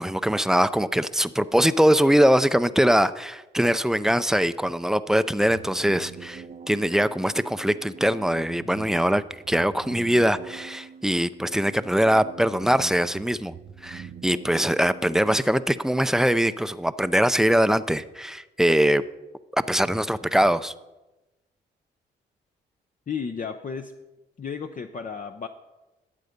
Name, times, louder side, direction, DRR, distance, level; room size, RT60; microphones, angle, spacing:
voice 1, 0.0-13.5 13.8-19.0 19.7-20.7, equal, ahead, 13 dB, 0.5 m, -22 dB
sound 1, 5.4-15.4, right 6 dB, 40° right, 0.8 m, -44 dB
voice 2, 23.1-23.9 24.4-25.5, left 6 dB, 40° left, 5 dB, 0.7 m, -33 dB
12.5 x 8.3 x 5.2 m, 1.1 s
supercardioid pair, 60°, 20 cm